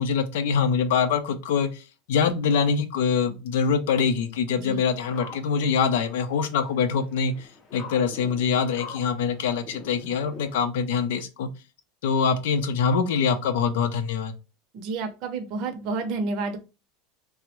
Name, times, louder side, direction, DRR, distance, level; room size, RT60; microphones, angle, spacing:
voice 1, 0.0-11.5 12.0-14.3, left 6 dB, 75° left, 10 dB, 0.5 m, -24 dB
sound 1, 5.0-10.6, left 4 dB, 20° left, 0.5 m, -45 dB
voice 2, 14.7-16.6, right 3 dB, 40° right, 4 dB, 0.5 m, -30 dB
3.4 x 2.0 x 2.9 m, 0.29 s
supercardioid pair, 175°, 0 cm